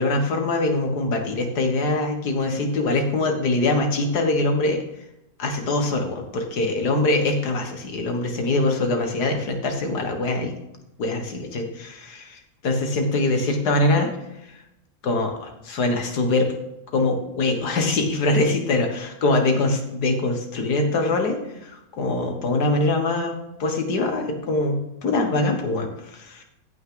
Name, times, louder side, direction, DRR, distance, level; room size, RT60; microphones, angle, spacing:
voice 1, 0.0-4.8 5.4-10.5 11.0-14.1 15.0-16.5 16.9-26.4, left 2 dB, 90° left, 4 dB, 2.1 m, -23 dB
15.5 x 5.9 x 3.9 m, 0.88 s
omnidirectional pair, 1.7 m